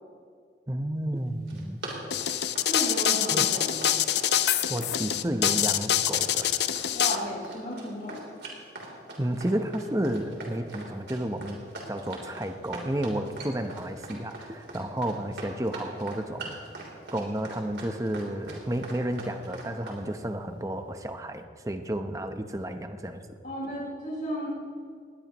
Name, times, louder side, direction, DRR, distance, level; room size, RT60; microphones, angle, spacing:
voice 1, 0.7-1.8 3.3-3.5 4.7-6.5 9.2-11.6 11.9-16.6 17.1-23.2, right 1 dB, 20° right, 7 dB, 0.8 m, -31 dB
Run, 1.3-20.0, right 2 dB, 75° right, 3.4 m, -42 dB
sound 1, 2.1-7.2, left 10 dB, 70° left, 0.6 m, -25 dB
voice 2, 2.6-4.0 6.9-8.2 23.4-24.5, equal, 50° left, -7 dB, 5.1 m, -34 dB
20.0 x 19.0 x 3.0 m, 2.2 s
head